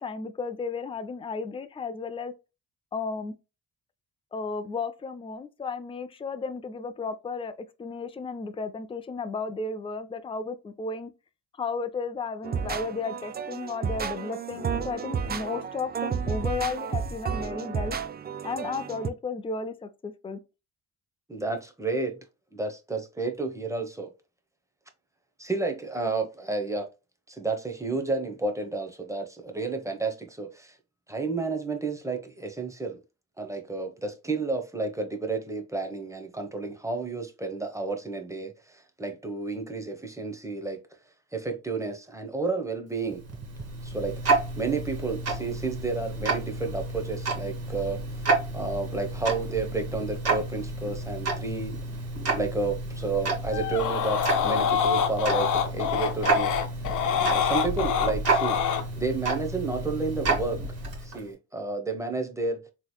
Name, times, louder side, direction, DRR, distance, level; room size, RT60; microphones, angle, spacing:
voice 1, 0.0-2.3 2.9-3.3 4.3-7.5 7.8-11.1 11.5-18.0 18.4-20.4, left 4 dB, 20° left, 0.5 m, -34 dB
sound 1, 12.4-19.1, right 6 dB, 30° right, 0.5 m, -32 dB
voice 2, 21.3-22.2 22.5-24.1 25.4-26.9 27.3-30.8 31.1-33.0 33.4-40.8 41.3-43.2 43.8-48.3 48.5-51.8 52.2-56.5 57.0-58.6 59.0-60.6 61.0-62.6, right 3 dB, 10° right, 0.9 m, -31 dB
Tick-tock, 43.0-61.3, right 3 dB, 55° right, 1.8 m, -30 dB
sound 2, 53.5-58.8, left 8 dB, 85° left, 0.9 m, -26 dB
3.8 x 3.1 x 2.2 m
cardioid pair, 90°, 30 cm